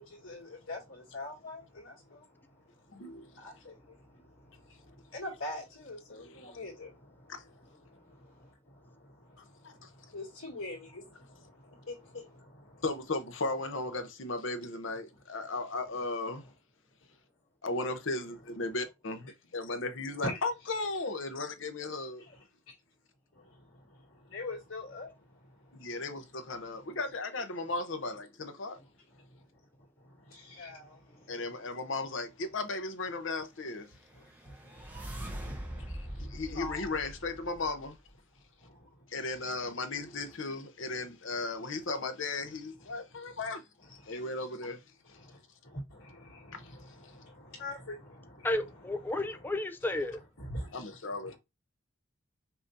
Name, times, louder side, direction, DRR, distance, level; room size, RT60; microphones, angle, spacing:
voice 1, 0.0-2.3 2.9-12.8 20.2-20.4 22.2-22.4 23.3-25.9 29.1-29.4 30.0-31.3 34.1-36.9 38.6-39.5 42.9-43.0 43.3-43.4 44.0-44.2 45.0-48.7 49.1-49.4 50.4-50.8 51.2-51.4, left 2 dB, 85° left, 2.2 m, -45 dB
voice 2, 2.9-3.4 6.1-6.6 9.6-9.9 12.8-16.4 17.6-22.2 25.7-28.8 31.3-33.9 35.9-38.0 39.1-43.6 44.1-44.8 46.5-46.6 50.7-51.4, left 3 dB, 60° left, 0.8 m, -36 dB
sound 1, 33.9-38.1, right 1 dB, 10° right, 0.8 m, -43 dB
voice 3, 48.4-50.2, left 1 dB, 10° left, 0.3 m, -32 dB
5.7 x 2.7 x 2.6 m
head